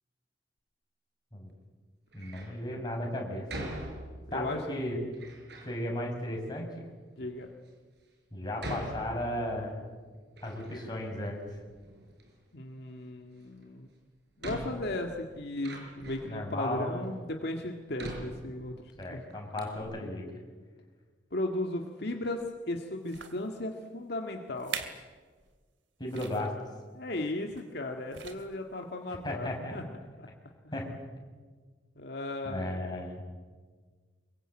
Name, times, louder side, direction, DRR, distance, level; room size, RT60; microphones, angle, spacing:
voice 1, 2.1-3.7 4.3-5.0 5.6-6.8 8.3-9.8 10.4-11.4 16.3-17.1 19.0-20.2 26.0-26.5 29.2-29.8 30.7-30.9 32.4-33.2, left 1 dB, 25° left, 0 dB, 6.7 m, -35 dB
Door, 2.1-2.6 3.5-4.5 5.1-5.8 6.5-6.6 7.3-7.4 8.6-9.7 10.1-11.2 11.4-12.3 13.6-13.7 14.4-16.4 17.0-17.1 18.0-19.0 19.3-19.4 19.6-19.8, right 1 dB, 65° right, 6.2 m, -42 dB
voice 2, 4.3-4.6 7.2-7.5 12.5-13.9 14.4-18.7 19.1-19.2 21.3-24.8 27.0-30.3 32.0-33.0, left 2 dB, 60° left, 3 dB, 1.9 m, -36 dB
sound 1, 22.3-22.5 23.0-23.5 24.1-24.2 24.6-25.1 25.4-25.6 26.1-26.5 27.5-27.8 28.1-28.7 29.3-29.4, right 6 dB, 85° right, 2.5 m, -42 dB
25.5 x 22.5 x 8.9 m, 1.5 s
head